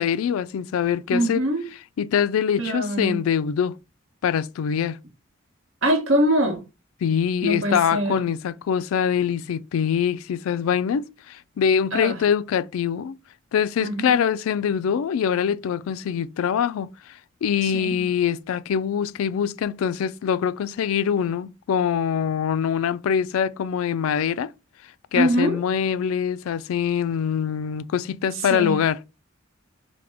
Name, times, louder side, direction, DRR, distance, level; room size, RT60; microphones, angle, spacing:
voice 1, 0.0-1.4 2.0-3.8 4.2-5.0 7.0-13.2 13.5-24.5 25.1-29.0, left 8 dB, 90° left, 0.3 m, -24 dB
voice 2, 1.1-1.7 2.6-3.2 5.8-6.6 7.4-8.2 11.9-12.2 13.8-14.2 17.6-18.0 25.1-25.6 28.3-28.8, right 1 dB, 70° right, 1.1 m, -23 dB
4.9 x 2.1 x 3.4 m
head